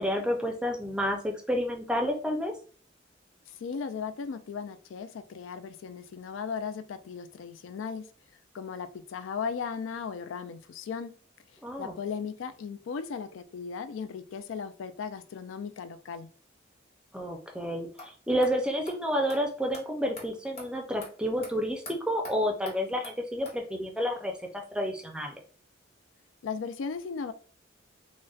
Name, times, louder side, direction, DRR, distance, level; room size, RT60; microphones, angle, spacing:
voice 1, 0.0-2.5 11.6-11.9 17.1-25.4, equal, 5° right, 2 dB, 0.4 m, -30 dB
voice 2, 3.5-8.1 8.5-11.2 11.8-16.3 26.4-27.3, left 6 dB, 85° left, 11 dB, 0.4 m, -36 dB
sound 1, 18.0-18.1 18.4-18.5 18.9-19.0 19.3-19.4 19.7-19.8 20.2-20.3 20.6-20.7 21.0-21.1 21.4-21.5 21.8-21.9 22.2-22.3 22.6-22.8 23.0-23.1 23.4-23.5, left 2 dB, 35° left, 1.1 m, -43 dB
3.9 x 2.1 x 2.4 m, 0.40 s
head